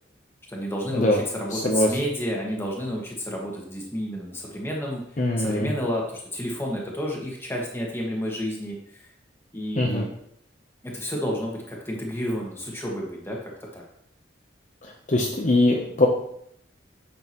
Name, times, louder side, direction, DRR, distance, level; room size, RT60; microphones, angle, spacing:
voice 1, 0.5-5.0 5.4-9.1 9.5-10.1 10.8-13.8, equal, 15° left, -2 dB, 1.7 m, -30 dB
voice 2, 1.5-1.9 5.2-5.7 9.8-10.0 15.1-16.1, left 1 dB, 40° left, 0 dB, 0.8 m, -21 dB
9.0 x 6.3 x 3.0 m, 0.71 s
head